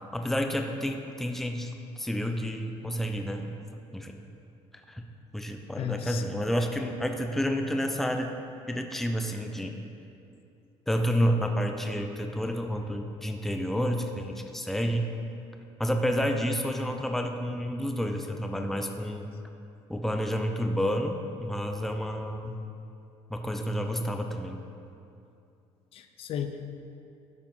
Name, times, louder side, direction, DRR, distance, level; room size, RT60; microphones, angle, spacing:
voice 1, 0.1-4.2 4.9-5.0 5.3-8.3 8.7-9.8 10.9-15.1 15.8-19.3 19.9-22.6 23.3-24.6, equal, 5° left, 4 dB, 0.7 m, -30 dB
voice 2, 5.8-6.2 25.9-26.7, left 8 dB, 60° left, 7 dB, 0.7 m, -34 dB
12.0 x 5.0 x 5.5 m, 2.6 s
cardioid pair, 115°, 11 cm